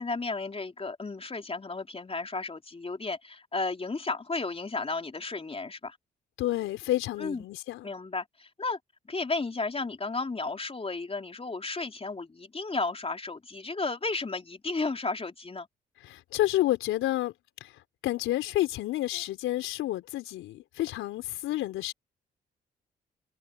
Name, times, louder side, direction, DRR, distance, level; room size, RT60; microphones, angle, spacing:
voice 1, 0.0-6.0 7.2-7.4 7.8-8.8 9.1-15.7, left 3 dB, 30° left, 3.6 m, -33 dB
voice 2, 6.4-7.9 16.0-17.3 17.6-17.7 18.0-21.9, left 15 dB, 75° left, 4.2 m, -29 dB
hypercardioid pair, 45°, 21 cm